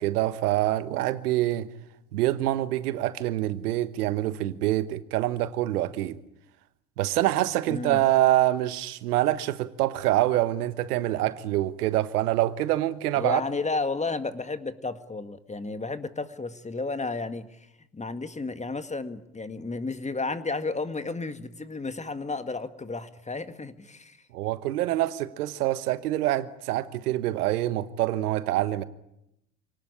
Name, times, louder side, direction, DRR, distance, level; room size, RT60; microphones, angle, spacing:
voice 1, 0.0-1.7 2.1-6.2 7.0-13.4 24.3-28.8, right 15 dB, 75° right, 1.3 m, -25 dB
voice 2, 7.7-8.0 13.1-17.7 17.9-24.2, left 3 dB, 15° left, 1.9 m, -32 dB
28.0 x 18.5 x 10.0 m
hypercardioid pair, 75°, 46 cm